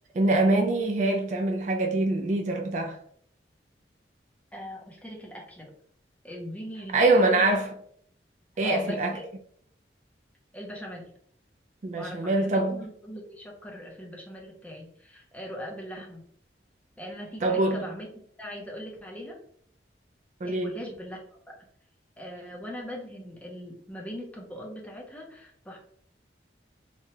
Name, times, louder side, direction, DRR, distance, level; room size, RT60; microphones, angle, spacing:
voice 1, 0.1-3.0 6.9-7.7 8.6-9.1 11.8-12.8 17.4-17.8 20.4-20.7, right 2 dB, 40° right, 0.3 m, -24 dB
voice 2, 4.5-5.7 6.2-7.5 8.6-9.2 10.5-11.1 11.9-16.2 17.0-18.1 18.4-19.4 20.4-21.5 22.2-25.8, equal, 10° left, 0.6 m, -40 dB
3.0 x 2.2 x 2.8 m
head